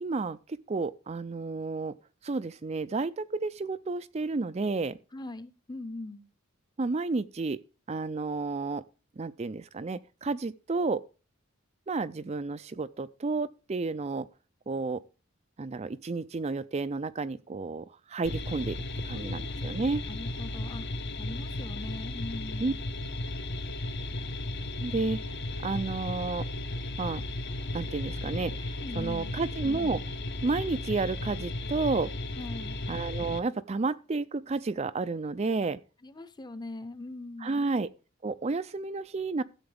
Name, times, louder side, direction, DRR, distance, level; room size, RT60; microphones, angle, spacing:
voice 1, 0.0-2.0 2.2-5.0 6.8-7.6 7.9-8.8 9.2-11.0 11.9-14.3 14.7-15.0 15.6-20.0 22.6-22.7 24.8-25.2 25.6-26.5 27.0-27.2 27.7-30.0 30.4-32.1 32.9-35.8 37.4-37.9 38.2-39.4, right 3 dB, 30° right, 0.4 m, -31 dB
voice 2, 5.1-6.2 19.1-19.7 20.1-20.9 21.2-22.8 28.8-29.3 32.4-32.8 36.0-37.6, left 2 dB, 20° left, 0.8 m, -41 dB
sound 1, 18.2-33.4, left 2 dB, 55° left, 1.0 m, -35 dB
14.0 x 7.9 x 3.4 m
head